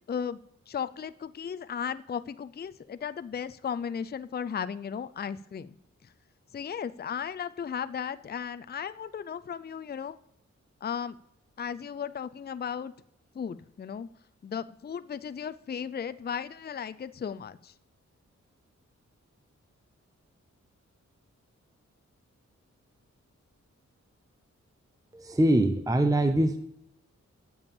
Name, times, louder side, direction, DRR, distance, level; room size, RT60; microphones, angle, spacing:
voice 1, 0.1-0.4 0.7-5.7 6.0-6.1 6.5-10.2 10.8-11.2 11.6-12.9 13.3-14.1 14.4-17.7, left 7 dB, 35° left, 13 dB, 0.5 m, -35 dB
voice 2, 25.1-26.6, right 1 dB, 10° right, 8 dB, 0.7 m, -23 dB
8.6 x 7.1 x 7.1 m, 0.80 s
cardioid pair, 70°, 29 cm